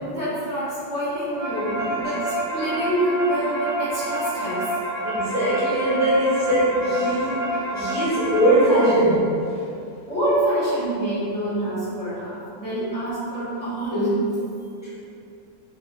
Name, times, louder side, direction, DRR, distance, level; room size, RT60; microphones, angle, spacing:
voice 1, 0.0-4.6 10.0-14.3, right 1 dB, 40° right, -16 dB, 1.4 m, -26 dB
sound 1, 1.0-8.9, right 1 dB, 65° right, 0.3 m, -28 dB
voice 2, 5.0-9.6 14.8-14.9, right 1 dB, 10° left, -12 dB, 1.0 m, -21 dB
3.7 x 2.8 x 3.2 m, 2.6 s
omnidirectional pair, 2.0 m